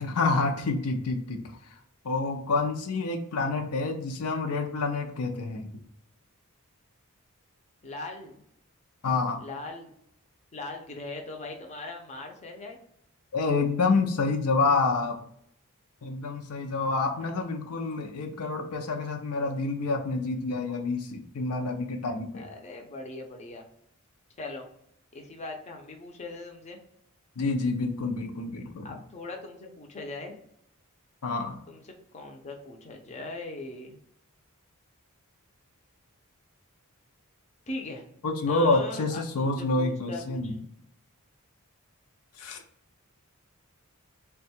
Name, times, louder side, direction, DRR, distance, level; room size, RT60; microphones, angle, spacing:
voice 1, 0.0-1.7 2.0-5.7 9.0-9.4 13.3-15.2 16.0-22.5 27.4-28.9 31.2-31.6 38.2-40.6 42.4-42.6, left 3 dB, 80° left, 4 dB, 0.6 m, -28 dB
voice 2, 7.8-8.4 9.4-9.9 10.5-12.8 22.3-23.6 24.4-24.7 25.1-26.8 28.8-30.3 31.7-31.8 32.1-34.0 37.7-40.7, left 2 dB, 30° left, 2 dB, 0.6 m, -40 dB
3.6 x 2.3 x 4.2 m, 0.71 s
head